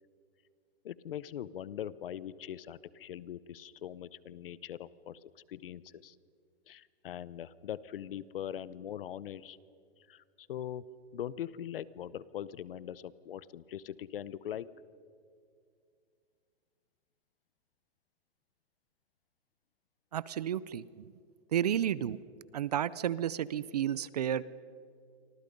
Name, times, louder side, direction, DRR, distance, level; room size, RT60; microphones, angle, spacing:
voice 1, 0.8-6.2 6.7-9.6 10.1-10.9 11.1-14.7, left 10 dB, 60° left, 19 dB, 0.8 m, -41 dB
voice 2, 20.1-20.8 21.5-22.2 22.5-24.4, right 10 dB, 40° right, 19 dB, 0.5 m, -31 dB
29.0 x 25.0 x 5.3 m, 2.3 s
hypercardioid pair, 175°, 32 cm